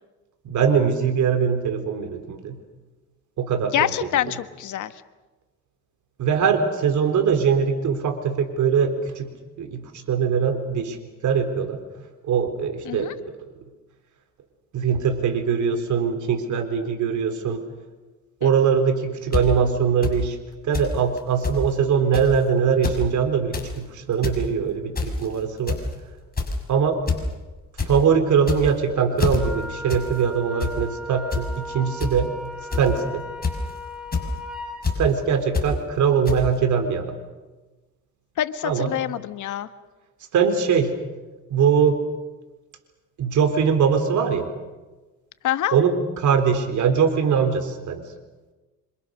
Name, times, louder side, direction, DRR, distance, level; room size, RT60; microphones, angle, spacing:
voice 1, 0.4-2.6 3.4-4.2 6.2-9.3 9.6-11.0 11.2-11.8 12.2-13.1 14.7-17.6 18.4-20.4 20.6-25.8 26.7-27.0 27.9-32.3 32.7-33.2 35.0-37.2 38.6-38.9 40.3-41.0 41.5-42.0 43.2-44.5 45.7-48.0, right 6 dB, 75° right, 7 dB, 4.1 m, -22 dB
voice 2, 3.7-4.9 12.8-13.1 18.4-18.5 38.4-39.7 45.4-45.8, left 11 dB, 75° left, 11 dB, 1.4 m, -26 dB
sound 1, 19.3-19.4 20.0-20.1 20.7-20.9 21.2-21.3 21.4-21.6 22.1-22.3 22.7-23.0 23.4-23.7 24.1-24.4 25.0-25.3 25.7-25.9 26.4-26.6 27.1-27.2 27.5-27.9 28.4-28.8 29.2-29.4 29.9-30.0 30.3-30.7 31.3-31.4 32.0-32.1 32.7-33.0 33.4-33.7 34.1-34.3 34.8-35.0 35.5-35.7 36.3-36.4, left 4 dB, 30° left, 6.1 m, -25 dB
Wind instrument woodwind instrument, 29.3-34.9, equal, ahead, 6.1 m, -36 dB
27.0 x 26.5 x 6.6 m, 1.2 s
cardioid pair, 90°, 30 cm